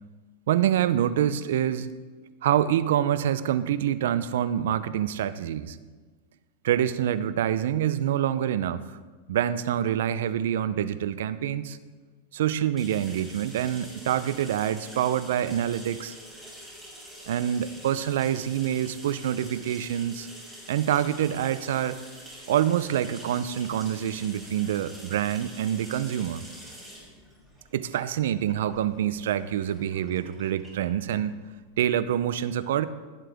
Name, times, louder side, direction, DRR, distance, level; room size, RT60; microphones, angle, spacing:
voice 1, 0.5-1.9 2.4-5.8 6.6-9.0 9.3-11.8 12.3-16.1 17.3-20.3 20.7-22.0 22.5-26.4 27.7-31.4 31.8-32.9, right 10 dB, 75° right, 14 dB, 0.5 m, -26 dB
sound 1, 12.8-32.2, equal, 5° right, 3.7 m, -46 dB
15.5 x 7.6 x 3.5 m, 1.4 s
supercardioid pair, 135°, 0 cm